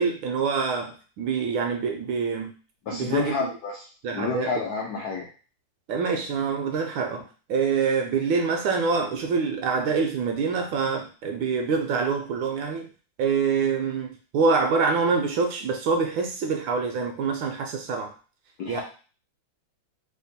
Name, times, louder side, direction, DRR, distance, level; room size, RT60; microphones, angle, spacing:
voice 1, 0.0-2.5 2.9-3.5 4.0-4.5 5.9-12.9 13.2-18.1 18.7-18.8, right 5 dB, 75° right, 4 dB, 1.2 m, -25 dB
voice 2, 2.9-3.8 4.1-5.3 18.6-18.8, left 5 dB, 80° left, -1 dB, 0.8 m, -29 dB
3.5 x 2.1 x 4.0 m, 0.37 s
omnidirectional pair, 2.4 m